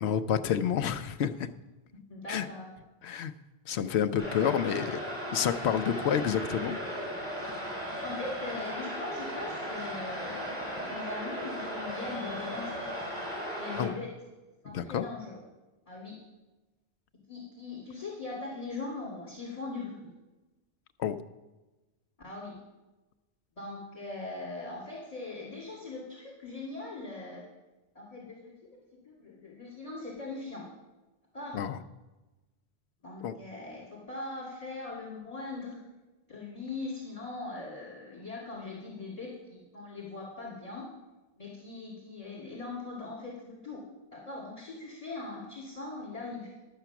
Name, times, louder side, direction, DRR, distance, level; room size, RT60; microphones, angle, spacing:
voice 1, 0.0-1.5 2.3-2.5 3.0-3.3 3.7-5.0 5.3-6.8 13.7-14.0 14.7-15.0 21.0-21.2 31.5-31.8 33.2-33.3, left 8 dB, 85° left, 10 dB, 0.9 m, -29 dB
voice 2, 2.1-2.7 6.1-6.3 7.7-12.9 13.6-14.1 14.6-15.4 15.9-16.2 17.3-20.1 22.2-22.6 23.6-27.4 28.0-28.5 29.1-30.7 31.3-31.6 33.0-35.8 36.3-40.9 41.4-43.8 44.1-46.5, left 3 dB, 35° left, -4 dB, 2.1 m, -40 dB
sound 1, 4.2-13.8, equal, 5° left, 4.4 m, -36 dB
11.0 x 6.7 x 5.8 m, 1.1 s
omnidirectional pair, 1.1 m